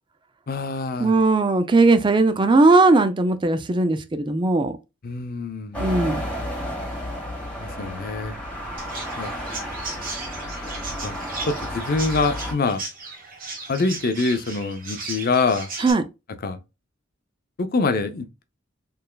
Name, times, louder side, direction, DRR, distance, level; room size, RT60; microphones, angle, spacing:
voice 1, 0.5-1.2 5.0-5.9 7.6-8.4 9.2-9.3 11.0-11.2 11.5-12.8 13.7-15.7 16.4-16.6 17.6-18.4, left 3 dB, 50° left, 0.5 m, -25 dB
voice 2, 1.0-4.8 5.8-6.2 15.8-16.0, right 3 dB, 25° right, 0.4 m, -18 dB
sound 1, 5.7-12.5, equal, 5° left, 1.6 m, -32 dB
Chirp tweet, 8.8-15.9, right 3 dB, 45° right, 1.2 m, -36 dB
4.4 x 3.2 x 2.2 m
head